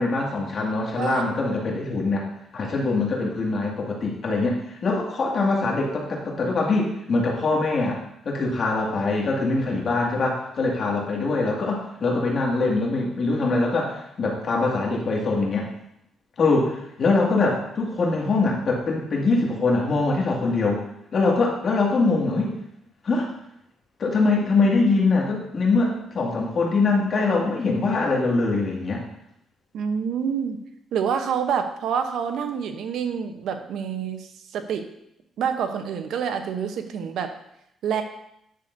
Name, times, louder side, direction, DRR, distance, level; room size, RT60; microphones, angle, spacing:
voice 1, 0.0-2.3 2.5-8.0 8.3-15.7 16.4-20.8 21.1-22.5 23.0-23.3 24.0-29.0, left 3 dB, 50° left, -2 dB, 2.0 m, -23 dB
voice 2, 29.7-30.6 30.9-34.9 35.4-37.3 37.8-38.0, right 7 dB, 75° right, 7 dB, 0.9 m, -27 dB
10.0 x 6.6 x 2.7 m, 0.77 s
cardioid pair, 90°, 0 cm